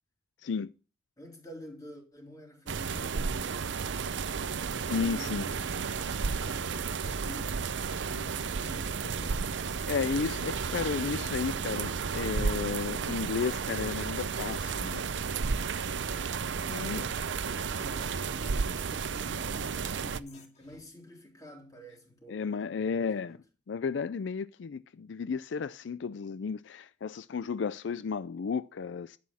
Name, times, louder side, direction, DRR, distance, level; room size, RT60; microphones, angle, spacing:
voice 1, 1.2-4.0 4.9-5.7 6.3-9.2 16.6-19.7 20.0-23.4, left 1 dB, 20° left, 3.6 m, -49 dB
sound 1, 2.7-20.2, right 5 dB, 80° right, 0.6 m, -33 dB
voice 2, 4.9-5.5 9.0-9.3 9.6-15.0 16.7-17.1 22.3-23.4 23.7-29.2, left 5 dB, 80° left, 0.4 m, -33 dB
sound 2, 11.7-20.8, left 3 dB, 40° left, 2.4 m, -58 dB
11.5 x 8.5 x 4.2 m
head